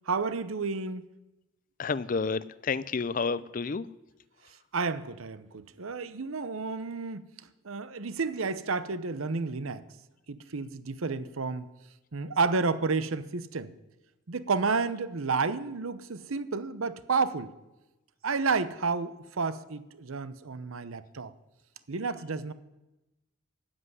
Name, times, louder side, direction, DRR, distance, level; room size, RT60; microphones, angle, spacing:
voice 1, 0.1-1.1 4.7-7.3 7.6-9.8 10.3-11.7 12.1-13.7 14.3-17.5 18.2-21.3 21.9-22.5, right 4 dB, 75° right, 14 dB, 0.8 m, -31 dB
voice 2, 1.8-3.9, left 4 dB, 40° left, 17 dB, 0.5 m, -30 dB
12.5 x 8.1 x 9.7 m, 0.99 s
head